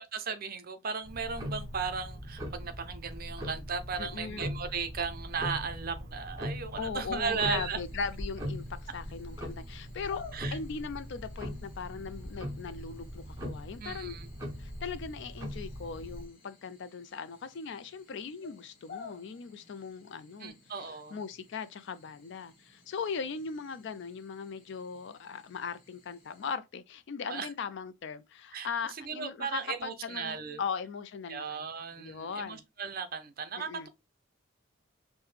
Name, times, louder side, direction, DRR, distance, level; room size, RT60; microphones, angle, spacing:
voice 1, 0.0-7.8 10.3-10.6 13.8-14.3 20.4-21.2 27.3-27.5 28.5-28.7 29.0-30.6 31.3-33.9, right 5 dB, 45° right, 0.5 m, -36 dB
Tick-tock, 1.0-16.3, equal, 15° right, 1.0 m, -40 dB
voice 2, 4.0-4.5 6.8-10.2 10.5-14.2 14.6-31.7 32.0-32.6 33.6-33.9, left 5 dB, 55° left, 0.4 m, -39 dB
sound 1, 7.1-26.6, left 5 dB, 40° left, 0.9 m, -55 dB
4.7 x 2.1 x 3.2 m
head